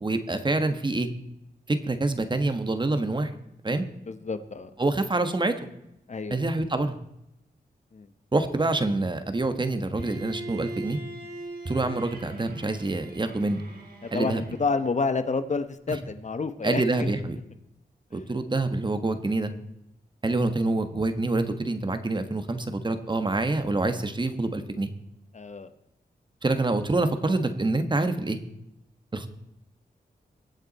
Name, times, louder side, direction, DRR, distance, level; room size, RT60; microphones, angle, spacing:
voice 1, 0.0-1.1 1.7-3.3 3.6-3.8 4.8-5.5 6.3-7.0 8.3-11.0 11.6-13.6 14.1-14.4 15.9-16.0 16.6-17.4 18.1-19.5 20.2-24.9 26.4-28.4 29.1-29.3, right 2 dB, 30° right, 9 dB, 1.4 m, -26 dB
voice 2, 4.1-4.7 6.1-6.5 7.9-8.1 14.0-17.1 18.1-18.2 25.3-25.7, left 4 dB, 45° left, 10 dB, 1.0 m, -29 dB
Bowed string instrument, 10.0-14.9, right 2 dB, 75° right, 4.3 m, -41 dB
22.5 x 8.1 x 4.2 m, 0.84 s
wide cardioid pair, 90°, 16 cm